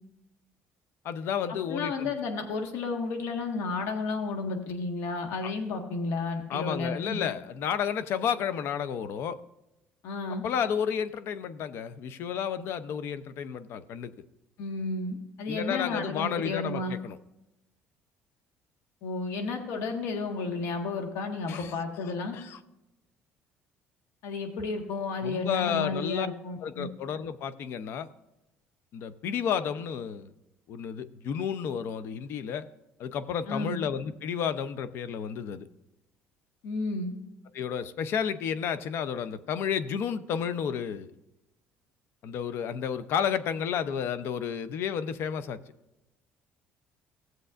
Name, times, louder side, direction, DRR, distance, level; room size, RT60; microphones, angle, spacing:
voice 1, 1.0-2.1 5.4-5.5 6.5-9.4 10.3-14.1 15.5-17.2 21.5-21.7 22.1-22.6 25.2-26.3 26.6-28.1 28.9-30.3 30.7-32.7 33.0-35.7 37.5-41.1 42.2-45.6, left 8 dB, 60° left, 13 dB, 0.6 m, -31 dB
voice 2, 1.7-7.2 10.0-10.4 14.6-17.0 19.0-22.3 24.2-26.9 33.5-33.8 36.6-37.1, left 3 dB, 75° left, 4 dB, 1.6 m, -32 dB
15.5 x 7.7 x 2.5 m, 0.93 s
cardioid pair, 120°, 5 cm